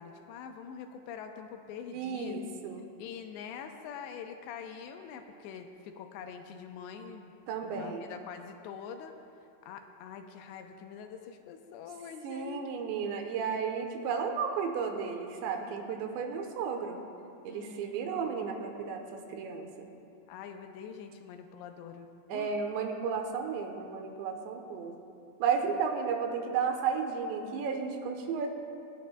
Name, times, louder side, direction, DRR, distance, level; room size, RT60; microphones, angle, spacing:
voice 1, 0.0-2.4 3.0-7.3 7.6-9.2 9.6-12.7 17.5-18.2 20.3-22.5, left 7 dB, 80° left, 5 dB, 2.8 m, -44 dB
voice 2, 1.9-2.9 7.5-8.1 12.2-17.0 17.4-19.9 22.3-24.9 25.4-28.5, right 6 dB, 85° right, 4 dB, 3.1 m, -33 dB
27.0 x 9.5 x 2.2 m, 2.6 s
omnidirectional pair, 5.1 m